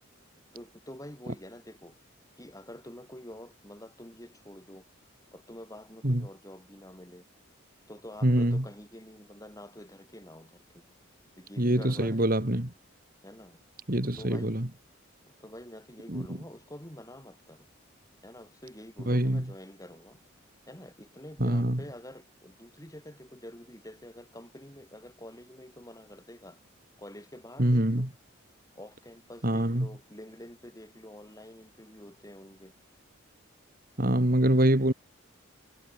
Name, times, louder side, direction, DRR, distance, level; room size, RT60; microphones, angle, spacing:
voice 1, 0.5-1.9 2.4-4.9 5.3-7.2 7.9-10.8 11.4-12.2 13.2-13.6 14.2-14.7 15.2-17.7 18.2-20.2 20.7-26.6 27.0-28.1 28.7-32.7, left 1 dB, 15° left, 7.6 m, -47 dB
voice 2, 8.2-8.6 11.6-12.7 13.9-14.7 16.1-16.2 19.1-19.4 21.4-21.8 27.6-28.1 29.4-29.9 34.0-34.9, right 1 dB, 45° right, 2.5 m, -25 dB
head